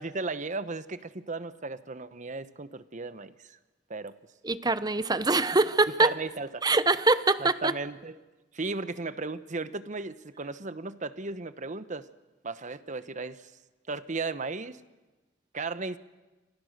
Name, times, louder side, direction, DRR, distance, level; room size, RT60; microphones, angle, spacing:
voice 1, 0.0-3.6 3.9-4.1 6.0-6.6 7.4-8.2 8.5-12.1 12.4-13.5 13.9-14.8 15.5-16.0, right 3 dB, 45° right, 13 dB, 1.1 m, -35 dB
voice 2, 4.4-6.1 6.6-7.7, right 3 dB, 20° right, 14 dB, 1.0 m, -24 dB
29.5 x 26.0 x 6.7 m, 1.1 s
head